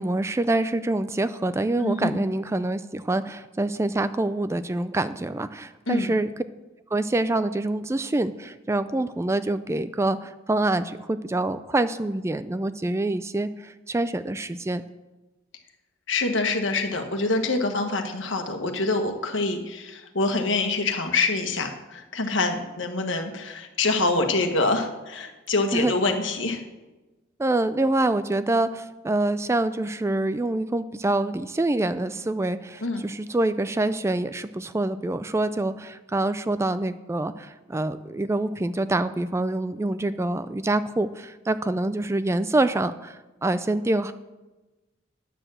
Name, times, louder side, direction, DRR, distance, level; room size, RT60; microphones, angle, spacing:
voice 1, 0.0-6.3 6.9-14.8 25.7-25.9 27.4-44.1, right 2 dB, 15° right, 13 dB, 0.3 m, -26 dB
voice 2, 1.8-2.2 5.9-6.1 16.1-26.6 32.8-33.0, left 3 dB, 75° left, 5 dB, 1.4 m, -25 dB
9.9 x 6.8 x 7.5 m, 1.1 s
head